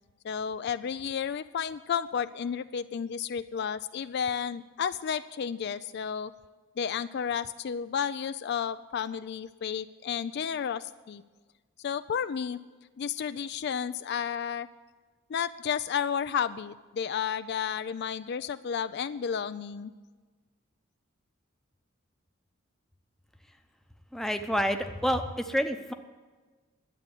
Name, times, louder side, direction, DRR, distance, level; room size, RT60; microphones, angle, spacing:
voice 1, 0.2-6.3 6.8-11.2 11.8-12.6 13.0-14.7 15.3-19.9, left 7 dB, 55° left, 13 dB, 0.4 m, -32 dB
voice 2, 24.1-25.9, equal, ahead, 6 dB, 0.8 m, -28 dB
11.5 x 8.3 x 9.7 m, 1.3 s
head